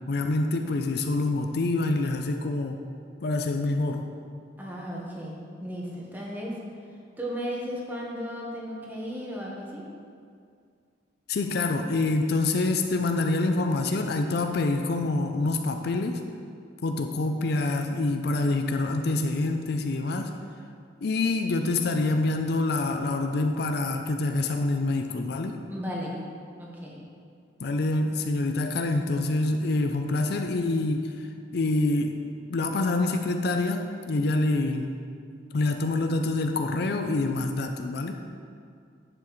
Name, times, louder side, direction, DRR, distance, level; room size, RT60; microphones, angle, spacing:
voice 1, 0.1-2.8 3.2-4.1 11.3-16.2 16.8-20.3 21.0-25.6 27.6-32.2 32.5-35.0 35.5-38.1, left 2 dB, 60° left, 5 dB, 0.5 m, -26 dB
voice 2, 4.6-5.3 5.6-6.6 7.2-9.8 25.7-26.1 26.6-27.0, equal, 10° right, -4 dB, 1.3 m, -35 dB
10.5 x 7.0 x 3.1 m, 2.3 s
head